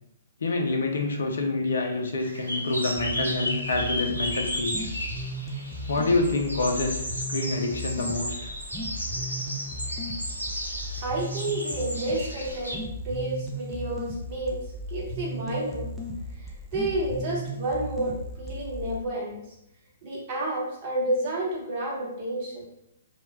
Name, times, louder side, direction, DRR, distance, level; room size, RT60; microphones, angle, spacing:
voice 1, 0.4-4.9 5.9-8.5, left 2 dB, 65° left, 2 dB, 0.4 m, -27 dB
sound 1, 2.2-12.8, equal, 85° right, 0.6 m, -34 dB
sound 2, 3.0-19.0, equal, ahead, 0.4 m, -36 dB
voice 2, 11.0-15.9 16.3-19.4 20.0-22.6, right 1 dB, 40° right, -4 dB, 1.0 m, -30 dB
2.2 x 2.1 x 3.4 m, 0.81 s
figure-of-eight pair, 120°, 0 cm